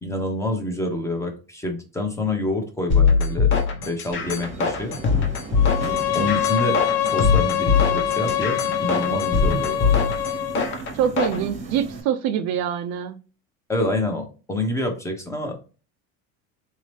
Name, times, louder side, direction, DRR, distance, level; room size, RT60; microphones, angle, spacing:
voice 1, 0.0-5.0 6.1-6.8 7.0-10.0 13.7-15.6, left 1 dB, 10° left, 3 dB, 0.7 m, -27 dB
sound 1, 2.9-11.4, left 5 dB, 35° left, 0.9 m, -22 dB
Subway metro underground, 4.1-12.0, right 4 dB, 20° right, 0.8 m, -35 dB
Bowed string instrument, 5.6-10.7, left 12 dB, 70° left, 0.5 m, -25 dB
voice 2, 10.9-13.2, right 9 dB, 55° right, 8 dB, 0.4 m, -24 dB
4.1 x 2.8 x 3.2 m, 0.34 s
cardioid pair, 150°, 34 cm